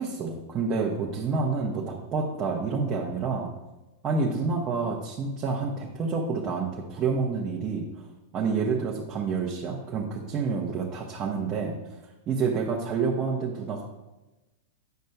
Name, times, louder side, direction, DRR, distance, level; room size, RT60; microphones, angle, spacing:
voice 1, 0.0-3.5 4.0-8.0 8.3-11.7 12.3-13.8, right 4 dB, 30° right, -3 dB, 1.0 m, -28 dB
9.3 x 6.4 x 2.3 m, 1.1 s
figure-of-eight pair, 95°, 0 cm